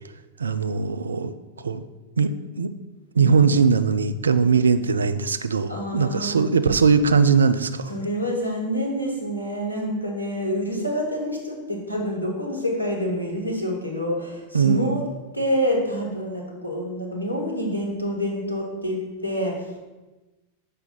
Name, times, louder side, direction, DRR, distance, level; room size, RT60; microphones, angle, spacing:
voice 1, 0.4-1.8 2.2-2.3 2.6-2.7 3.1-7.9 14.5-15.0, right 5 dB, 75° right, 11 dB, 0.3 m, -20 dB
voice 2, 5.7-6.6 7.9-15.0 15.3-19.8, equal, 85° left, -1 dB, 1.1 m, -27 dB
6.0 x 3.3 x 5.3 m, 1.1 s
figure-of-eight pair, 90°, 0 cm